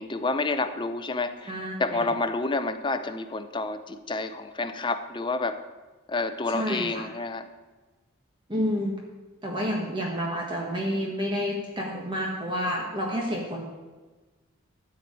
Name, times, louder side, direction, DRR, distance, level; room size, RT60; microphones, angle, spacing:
voice 1, 0.0-1.5 1.8-5.6 6.1-7.5, left 3 dB, 20° left, 10 dB, 0.5 m, -29 dB
voice 2, 1.4-2.1 6.5-7.0 8.5-9.0 9.4-13.7, equal, 20° right, -2 dB, 1.4 m, -29 dB
13.5 x 4.7 x 8.5 m, 1.3 s
head